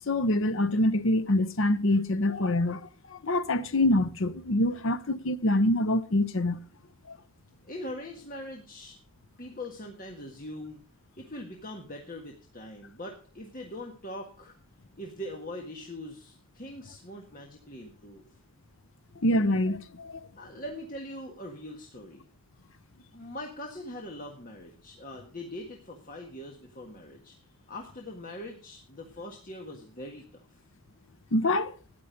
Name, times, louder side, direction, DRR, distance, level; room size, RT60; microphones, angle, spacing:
voice 1, 0.1-6.6 7.1-7.2 19.2-20.2 31.3-31.7, left 1 dB, 60° left, 0.8 m, -25 dB
voice 2, 7.6-9.0 9.4-10.8 11.2-14.6 15.0-18.2 20.4-22.2 23.1-27.4 27.7-30.6, left 1 dB, 40° left, 1.6 m, -42 dB
13.0 x 10.0 x 5.1 m
head